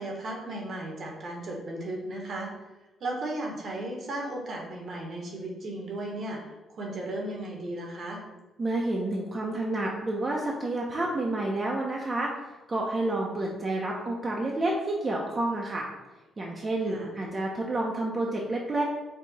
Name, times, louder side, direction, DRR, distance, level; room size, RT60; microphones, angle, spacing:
voice 1, 0.0-2.5 3.0-8.2 16.8-17.2, right 1 dB, 55° right, 0 dB, 1.1 m, -35 dB
voice 2, 8.6-12.3 12.7-15.9 16.4-18.8, right 2 dB, 30° right, -2 dB, 0.7 m, -29 dB
4.7 x 2.4 x 4.0 m, 1.1 s
cardioid pair, 90°, 0 cm